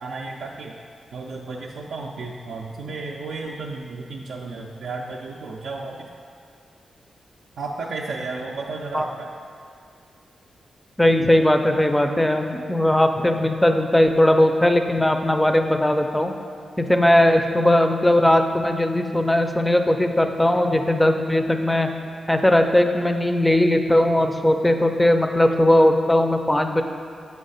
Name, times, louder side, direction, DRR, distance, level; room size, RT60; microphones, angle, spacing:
voice 1, 0.0-0.7 1.1-5.9 7.6-9.0, right 3 dB, 80° right, -2 dB, 0.4 m, -33 dB
voice 2, 11.0-16.3 16.8-21.9 22.3-26.8, left 1 dB, 10° left, 6 dB, 0.4 m, -19 dB
7.5 x 3.2 x 5.5 m, 2.2 s
wide cardioid pair, 120°, 0 cm